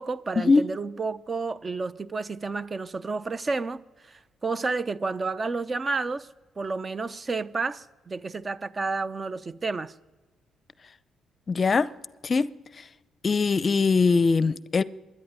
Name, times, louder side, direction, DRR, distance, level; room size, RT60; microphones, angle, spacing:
voice 1, 0.0-6.3 6.6-9.9, right 3 dB, 30° right, 0.7 m, -31 dB
voice 2, 11.5-11.9 12.2-12.5 12.8-12.9 13.2-14.8, left 4 dB, 40° left, 0.6 m, -21 dB
25.5 x 10.5 x 9.6 m
cardioid pair, 90°, 0 cm